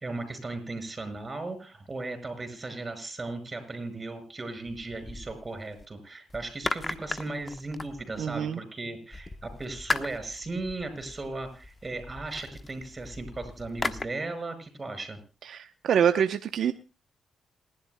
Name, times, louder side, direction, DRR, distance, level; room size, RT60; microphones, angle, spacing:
voice 1, 0.0-15.2, right 2 dB, 30° right, 8 dB, 5.6 m, -37 dB
sound 1, 4.7-5.9 6.3-8.5 9.1-14.1, left 3 dB, 30° left, 1.0 m, -37 dB
voice 2, 8.2-8.6 15.4-16.7, right 8 dB, 75° right, 9 dB, 0.8 m, -25 dB
28.5 x 11.5 x 2.2 m, 0.32 s
cardioid pair, 70°, 0 cm